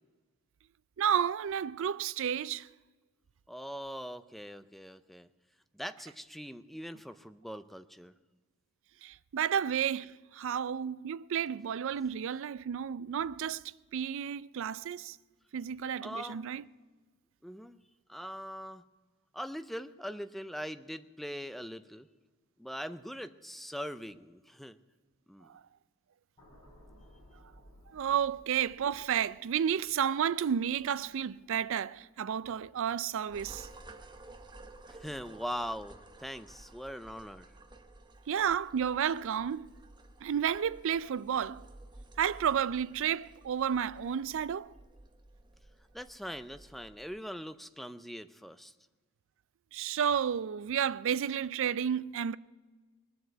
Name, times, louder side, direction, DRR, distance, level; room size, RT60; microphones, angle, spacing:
voice 1, 1.0-2.7 9.0-13.6 13.9-15.2 15.5-16.6 25.5-25.6 27.9-33.7 38.3-39.7 40.2-41.6 42.2-44.7 49.7-52.4, right 8 dB, 60° right, 0.4 m, -31 dB
voice 2, 3.5-5.3 5.7-8.1 16.0-16.6 17.4-17.8 18.1-18.9 19.3-22.1 22.6-24.8 25.3-25.5 34.9-37.5 45.9-48.7, equal, ahead, 0.4 m, -42 dB
sound 1, 26.4-32.7 33.0-33.3, equal, 25° left, 6.5 m, -60 dB
sound 2, 33.3-47.2, right 2 dB, 20° right, 0.9 m, -54 dB
20.5 x 7.8 x 8.3 m
head